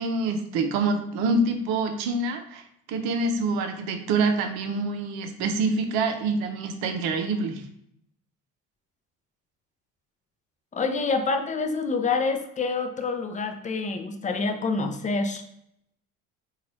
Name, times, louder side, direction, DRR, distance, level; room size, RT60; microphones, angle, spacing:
voice 1, 0.0-2.6 2.9-7.6, right 3 dB, 70° right, 5 dB, 0.6 m, -26 dB
voice 2, 10.7-15.4, left 4 dB, 20° left, 6 dB, 0.4 m, -27 dB
2.8 x 2.4 x 3.0 m, 0.72 s
hypercardioid pair, 60°, 39 cm